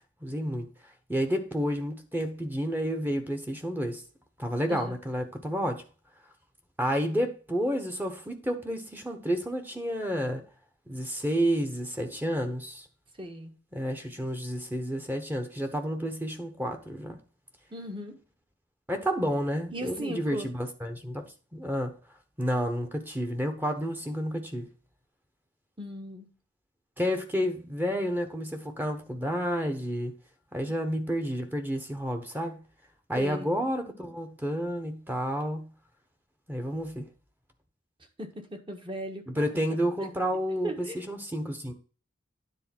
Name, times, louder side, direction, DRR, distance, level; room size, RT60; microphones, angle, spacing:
voice 1, 0.2-0.7 1.1-4.0 4.4-5.8 6.8-10.4 10.9-12.9 13.7-17.2 18.9-21.2 21.5-22.0 22.4-24.7 27.0-30.1 30.5-32.6 33.1-35.7 36.5-37.1 39.3-41.7, equal, 10° right, 1.1 m, -30 dB
voice 2, 13.2-13.5 17.7-18.2 19.7-20.5 25.8-26.3 33.2-33.5 38.2-39.3 40.6-41.0, equal, 25° right, 1.4 m, -37 dB
9.8 x 3.9 x 6.0 m
head